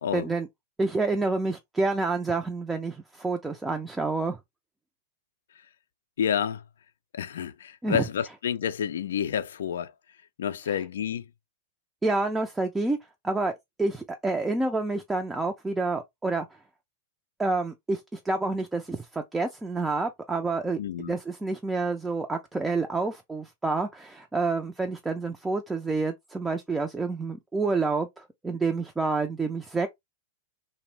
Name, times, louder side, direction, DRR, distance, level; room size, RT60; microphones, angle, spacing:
voice 1, 0.1-0.5 0.8-4.4 7.8-8.0 12.0-13.0 13.2-13.5 13.8-16.5 17.4-29.9, right 3 dB, 10° right, 0.4 m, -28 dB
voice 2, 6.2-6.6 7.1-9.9 10.4-11.3 20.8-21.1, left 8 dB, 75° left, 0.3 m, -29 dB
2.6 x 2.0 x 3.0 m
hypercardioid pair, 105°, 0 cm